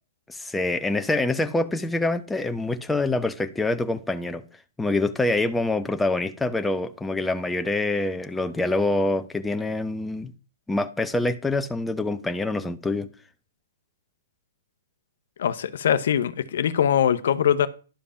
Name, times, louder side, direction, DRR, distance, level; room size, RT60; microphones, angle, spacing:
voice 1, 0.3-4.4 4.8-10.3 10.7-13.1, left 2 dB, 5° left, 0.7 m, -25 dB
voice 2, 15.4-17.7, left 9 dB, 65° left, 0.8 m, -22 dB
11.5 x 5.2 x 5.7 m
hypercardioid pair, 135°, 0 cm